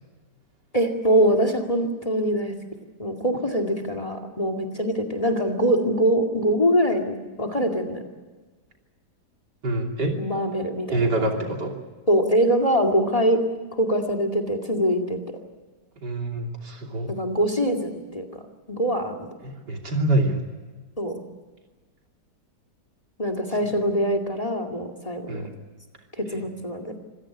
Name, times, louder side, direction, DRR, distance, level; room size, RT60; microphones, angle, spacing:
voice 1, 0.7-2.5 3.0-8.0 10.2-11.4 12.1-13.4 13.7-15.2 17.1-18.3 18.7-19.3 21.0-21.2 23.2-25.5 26.2-26.9, equal, 20° left, 8 dB, 2.3 m, -23 dB
voice 2, 9.6-10.2 10.9-11.8 16.0-17.1 19.4-20.4 25.3-25.5 26.3-26.4, right 2 dB, 80° right, 2 dB, 3.6 m, -26 dB
25.5 x 16.5 x 9.9 m, 1.3 s
omnidirectional pair, 1.8 m